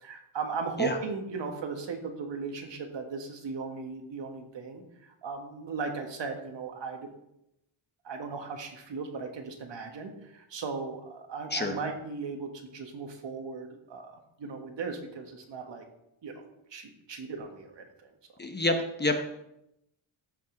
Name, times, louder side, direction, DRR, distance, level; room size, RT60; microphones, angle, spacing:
voice 1, 0.0-7.1 8.0-15.9 16.2-16.4 16.7-18.1, right 4 dB, 65° right, 4 dB, 1.6 m, -37 dB
voice 2, 18.4-19.2, left 2 dB, 20° left, 5 dB, 0.8 m, -28 dB
14.0 x 5.4 x 3.9 m, 0.83 s
wide cardioid pair, 135°, 47 cm